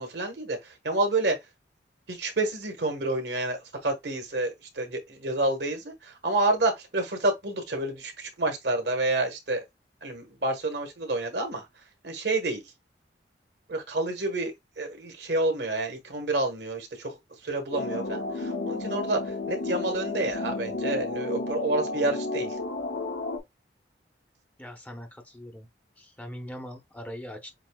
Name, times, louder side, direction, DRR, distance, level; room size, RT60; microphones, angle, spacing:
voice 1, 0.0-1.4 2.1-9.6 10.0-11.7 12.0-12.7 13.7-22.6, right 2 dB, 65° right, 1.3 m, -29 dB
sound 1, 17.7-23.4, left 2 dB, 85° left, 1.1 m, -32 dB
voice 2, 24.6-25.7 26.0-27.5, equal, 10° left, 0.8 m, -41 dB
7.6 x 2.7 x 2.3 m
head